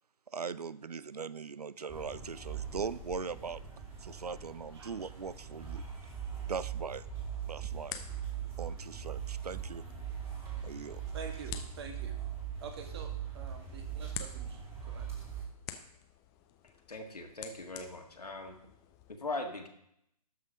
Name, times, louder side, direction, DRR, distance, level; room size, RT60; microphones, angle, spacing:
voice 1, 0.3-3.6 4.0-5.8 6.5-7.0 7.5-8.1 8.6-9.8 10.6-11.0, right 5 dB, 75° right, 18 dB, 0.5 m, -40 dB
sound 1, 1.9-15.4, right 8 dB, 15° right, 2.7 m, -41 dB
sound 2, 7.0-19.2, left 10 dB, 15° left, 0.6 m, -50 dB
voice 2, 11.1-12.2 12.6-14.6 14.9-15.1, right 5 dB, 40° right, 5 dB, 1.7 m, -46 dB
voice 3, 16.9-18.5 19.1-19.7, left 2 dB, 75° left, 4 dB, 1.8 m, -40 dB
12.5 x 5.7 x 5.1 m, 0.75 s
figure-of-eight pair, 130°, 20 cm